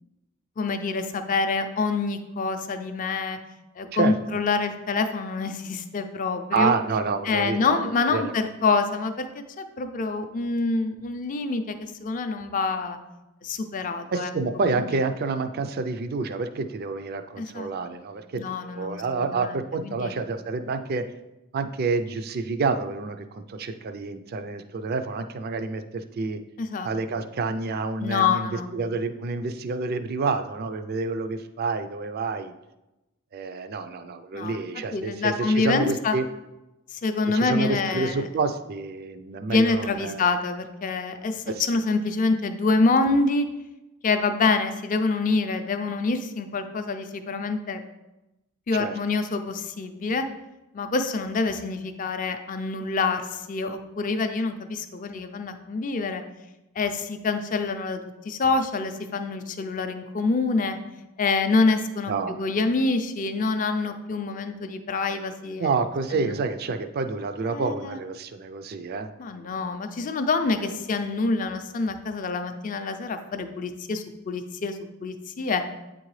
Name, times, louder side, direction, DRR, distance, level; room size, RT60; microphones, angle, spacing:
voice 1, 0.6-3.4 3.8-6.7 7.2-9.3 9.6-13.0 13.4-14.3 14.8-14.9 17.4-17.7 18.4-19.0 19.3-20.1 26.6-26.9 28.0-28.7 34.3-34.6 34.9-36.1 36.9-38.3 39.5-43.5 44.0-47.8 48.7-50.3 50.7-56.2 56.8-60.8 61.2-62.1 62.4-65.7 66.1-66.3 67.5-68.0 69.2-75.6, left 3 dB, 40° left, 8 dB, 0.4 m, -26 dB
voice 2, 6.5-7.8 8.1-8.3 14.1-21.0 21.5-26.4 26.8-32.5 33.3-36.2 37.3-40.3 41.5-41.7 48.8-48.9 62.1-62.5 65.6-69.1 70.6-70.7, right 4 dB, 45° right, 9 dB, 0.4 m, -28 dB
8.6 x 3.8 x 3.2 m, 0.98 s
head